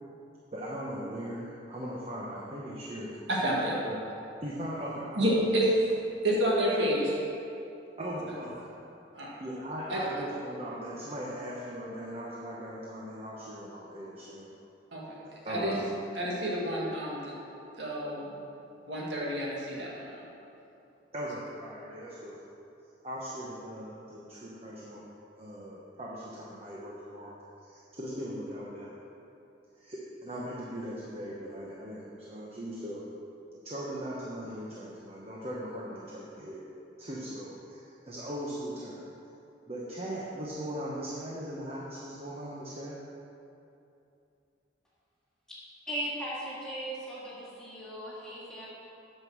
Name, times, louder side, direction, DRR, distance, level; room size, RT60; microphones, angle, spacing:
voice 1, 0.5-3.1 3.8-4.1 4.4-5.6 8.0-8.7 9.4-14.5 15.4-15.8 16.2-16.3 21.1-22.4 23.0-25.0 25.4-28.9 29.8-33.0 33.5-36.6 37.0-39.0 39.7-43.0, equal, 35° right, -5 dB, 1.0 m, -39 dB
voice 2, 3.3-3.7 5.2-5.7 6.2-7.2 9.1-9.3 9.9-10.0 14.9-15.0 15.5-15.8 16.2-17.3 17.8-18.4 18.8-20.1, right 1 dB, 70° right, -5 dB, 2.0 m, -29 dB
voice 3, 45.9-48.7, right 1 dB, 5° left, -8 dB, 2.1 m, -37 dB
9.0 x 5.5 x 6.3 m, 2.7 s
head